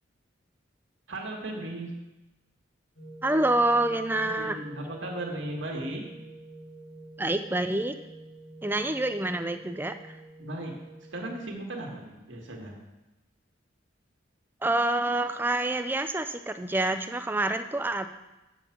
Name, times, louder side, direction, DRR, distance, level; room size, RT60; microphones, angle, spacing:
voice 1, 1.1-1.9 4.2-6.0 10.4-10.7 11.1-12.8, right 1 dB, 70° right, 0 dB, 1.6 m, -36 dB
sound 1, 3.0-11.5, right 2 dB, 65° left, 2.0 m, -47 dB
voice 2, 3.2-4.6 7.2-7.9 8.6-10.2 14.6-18.1, right 2 dB, 10° right, 9 dB, 0.4 m, -27 dB
7.3 x 7.0 x 5.8 m, 1.0 s
head